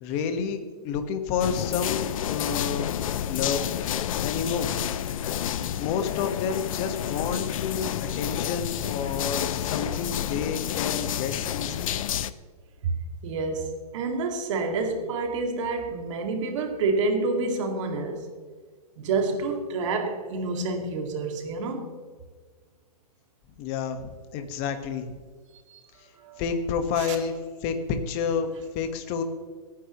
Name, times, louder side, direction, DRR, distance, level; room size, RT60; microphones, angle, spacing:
voice 1, 0.0-3.6 4.2-4.8 5.8-11.9 23.6-25.2 26.4-27.4 27.6-29.2, left 6 dB, 30° left, 1.4 m, -30 dB
sound 1, 1.4-12.3, left 10 dB, 60° left, 0.6 m, -29 dB
voice 2, 12.8-18.3 19.0-22.0 25.7-25.8 26.2-26.4 26.9-27.2, right 3 dB, 50° right, 2.2 m, -28 dB
25.5 x 9.9 x 3.1 m
hypercardioid pair, 150°, 20 cm